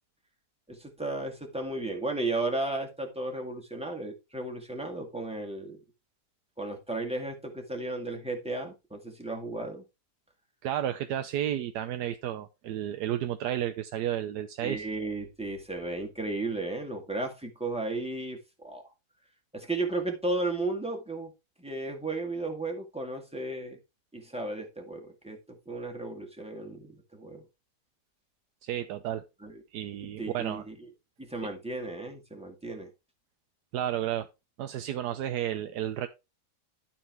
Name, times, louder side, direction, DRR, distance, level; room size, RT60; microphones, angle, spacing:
voice 1, 0.7-5.8 6.6-9.8 14.6-18.8 19.5-21.3 21.6-23.8 24.1-25.4 25.7-27.5 29.4-29.6 30.2-30.8 31.2-32.9, right 2 dB, 5° right, 1.9 m, -34 dB
voice 2, 10.6-14.8 28.6-29.2 29.7-30.6 33.7-34.3 34.6-36.1, right 11 dB, 85° right, 1.3 m, -32 dB
12.5 x 4.4 x 4.5 m
omnidirectional pair, 1.7 m